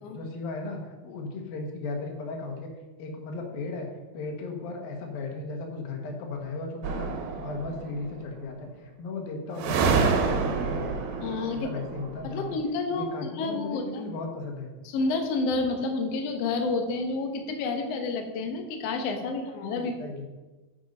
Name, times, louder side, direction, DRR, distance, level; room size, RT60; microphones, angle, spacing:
voice 1, 0.1-2.7 3.0-3.9 4.1-7.1 7.4-11.0 11.5-12.5 12.9-14.7 19.3-19.4 19.7-20.2, left 3 dB, 85° left, 3 dB, 3.2 m, -36 dB
sound 1, 6.8-8.0 9.6-12.4, right 5 dB, 90° right, 2.9 m, -27 dB
voice 2, 11.2-11.7 12.2-14.0 14.8-20.1, left 3 dB, 65° left, 4 dB, 1.7 m, -29 dB
9.0 x 7.3 x 5.3 m, 1.2 s
omnidirectional pair, 4.1 m